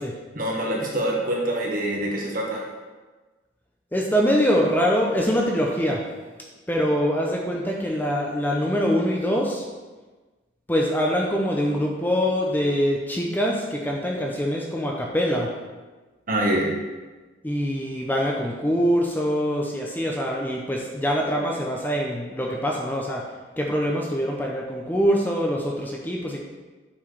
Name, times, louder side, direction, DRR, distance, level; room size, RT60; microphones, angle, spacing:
voice 1, 0.3-2.7 16.3-16.7, right 1 dB, 45° right, -2 dB, 1.4 m, -25 dB
voice 2, 3.9-6.0 6.7-9.6 10.7-15.5 17.4-23.2 23.6-26.4, equal, 10° left, -1 dB, 0.6 m, -24 dB
7.3 x 4.4 x 4.7 m, 1.3 s
head